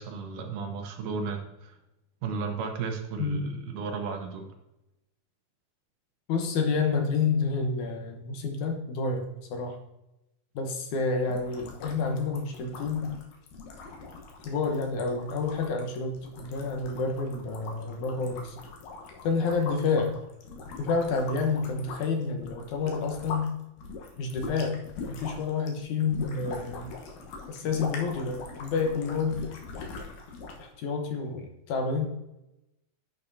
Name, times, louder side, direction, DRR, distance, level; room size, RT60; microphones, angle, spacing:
voice 1, 0.0-1.8 2.2-4.5, right 5 dB, 80° right, 4 dB, 2.7 m, -34 dB
voice 2, 6.3-9.8 10.6-13.1 14.5-18.6 19.2-20.2 20.8-23.5 24.2-24.8 25.1-26.9 27.5-29.4 30.6-32.1, left 4 dB, 75° left, 3 dB, 2.5 m, -29 dB
sound 1, 11.3-23.5 23.8-30.7, left 4 dB, 90° left, 2.8 m, -42 dB
11.0 x 5.7 x 2.7 m, 0.91 s
omnidirectional pair, 3.6 m